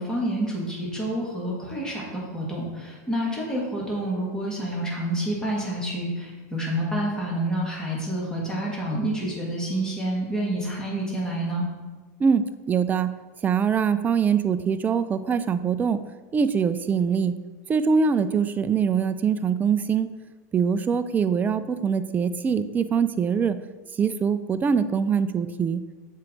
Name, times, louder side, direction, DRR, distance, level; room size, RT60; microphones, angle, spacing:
voice 1, 0.0-11.7, right 1 dB, 10° left, -4 dB, 1.9 m, -28 dB
voice 2, 12.2-13.1 13.4-16.0 16.3-17.3 17.7-20.1 20.5-23.6 24.0-25.8, right 6 dB, 20° right, 11 dB, 0.4 m, -23 dB
7.4 x 4.5 x 3.8 m, 1.2 s
supercardioid pair, 125°, 9 cm